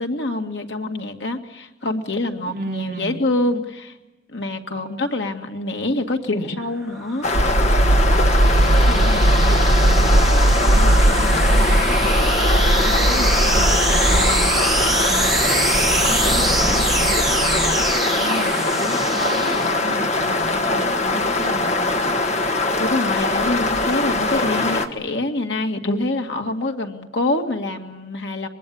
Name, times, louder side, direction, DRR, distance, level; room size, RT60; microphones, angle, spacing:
voice 1, 0.0-3.9 4.3-7.3 22.8-28.5, left 2 dB, 85° left, 4 dB, 2.1 m, -25 dB
voice 2, 2.5-3.2 8.5-12.0 12.7-14.8 15.1-22.1, right 1 dB, 55° right, 3 dB, 1.9 m, -33 dB
sound 1, 6.6-20.1, right 2 dB, ahead, 2.5 m, -25 dB
sound 2, 7.2-24.9, left 2 dB, 40° left, 1.6 m, -22 dB
sound 3, 7.3-17.9, right 1 dB, 70° right, 0.8 m, -19 dB
24.5 x 22.0 x 8.6 m, 1.0 s
head